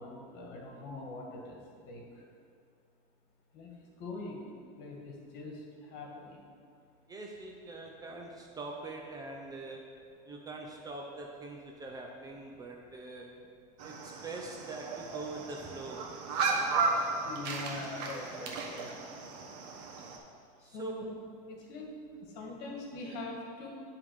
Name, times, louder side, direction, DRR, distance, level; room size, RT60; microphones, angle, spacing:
voice 1, 0.0-1.6 1.8-2.0 3.5-3.7 4.0-4.4 4.8-5.5 5.9-6.3 17.2-18.9 20.7-21.1 21.5-21.9 22.4-23.7, left 2 dB, 55° left, -1 dB, 1.8 m, -42 dB
voice 2, 7.1-9.9 10.2-13.4 13.8-16.7 20.6-20.9, right 2 dB, 20° right, 1 dB, 0.6 m, -44 dB
sound 1, 13.8-20.2, right 4 dB, 80° right, 1.1 m, -35 dB
11.0 x 3.7 x 4.8 m, 2.3 s
supercardioid pair, 145°, 21 cm